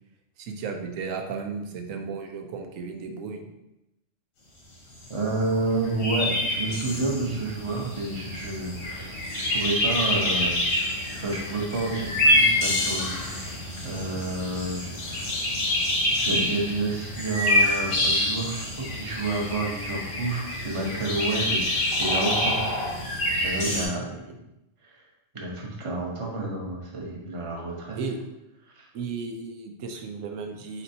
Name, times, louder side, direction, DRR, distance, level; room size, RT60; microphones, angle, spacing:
voice 1, 0.4-3.5 23.6-24.3 27.9-28.2 28.9-30.8, right 5 dB, 90° right, 4 dB, 1.0 m, -34 dB
sound 1, 5.0-5.1 5.3-5.4 5.6-23.8, left 1 dB, 85° left, 1.6 m, -27 dB
voice 2, 5.1-10.9 11.2-13.5 13.8-15.4 16.1-21.6 22.0-22.6 23.4-24.1 24.8-25.0 25.3-28.0 28.7-28.9, right 2 dB, 30° right, -2 dB, 0.8 m, -30 dB
4.3 x 4.2 x 2.7 m, 0.90 s
omnidirectional pair, 1.3 m